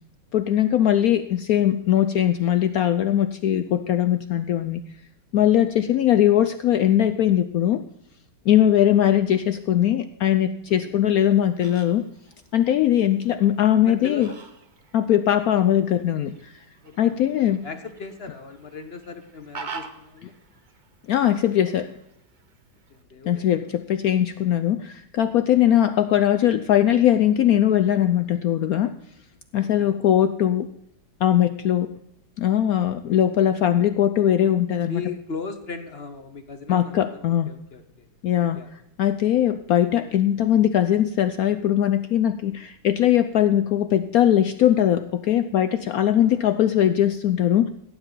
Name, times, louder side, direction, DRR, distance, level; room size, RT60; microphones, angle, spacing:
voice 1, 0.3-4.8 5.3-7.8 8.5-12.0 12.5-14.3 14.9-16.6 17.0-17.6 21.1-21.9 23.3-28.9 29.5-30.7 31.2-31.9 32.4-35.0 36.7-37.5 38.2-38.6 39.0-47.7, left 11 dB, 75° left, 10 dB, 0.8 m, -20 dB
Fowl, 11.0-23.0, right 4 dB, 35° right, 0.8 m, -46 dB
voice 2, 13.8-14.4 16.8-17.2 17.6-20.3 22.9-23.7 25.6-25.7 29.6-30.0 34.9-37.8 38.5-38.7 46.2-46.4, left 4 dB, 45° left, 8 dB, 0.9 m, -38 dB
17.0 x 9.6 x 3.9 m, 0.80 s
omnidirectional pair, 2.1 m